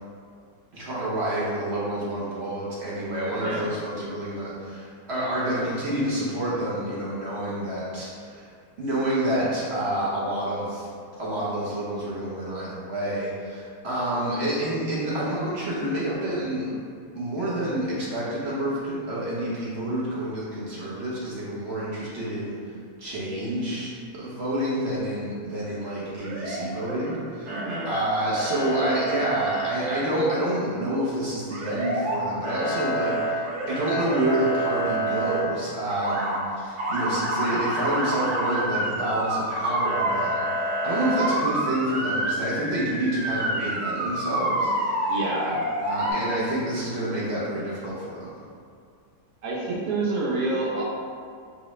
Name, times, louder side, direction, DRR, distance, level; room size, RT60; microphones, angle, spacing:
voice 1, 0.7-8.5 8.8-10.9 11.2-16.7 17.1-22.7 23.0-27.5 27.8-45.1 45.8-48.4, right 1 dB, 55° right, -7 dB, 0.8 m, -28 dB
Motor vehicle (road) / Siren, 26.2-27.2 27.5-28.0 28.3-29.7 31.5-32.2 32.4-35.4 35.9-36.4 36.8-46.1, right 1 dB, 90° right, 2.2 m, -28 dB
voice 2, 27.5-27.9 45.1-45.6 49.4-50.8, right 2 dB, 70° right, -4 dB, 1.2 m, -28 dB
4.8 x 2.1 x 3.0 m, 2.3 s
omnidirectional pair, 1.6 m